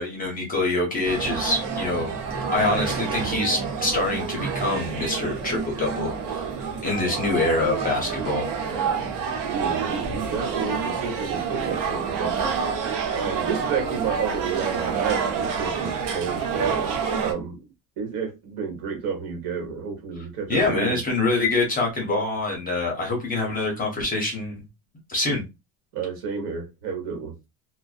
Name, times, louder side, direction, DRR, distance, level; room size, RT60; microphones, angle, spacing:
voice 1, 0.0-2.1 2.5-6.4 6.8-8.4 20.5-24.6 25.1-25.4, left 2 dB, 20° left, 0.6 m, -25 dB
sound 1, 1.0-17.3, right 6 dB, 90° right, 0.9 m, -28 dB
voice 2, 9.4-12.5 13.1-16.9 17.2-17.6 18.0-21.0 25.9-27.3, right 6 dB, 60° right, 1.2 m, -30 dB
2.5 x 2.1 x 2.4 m
cardioid pair, 165°, 42 cm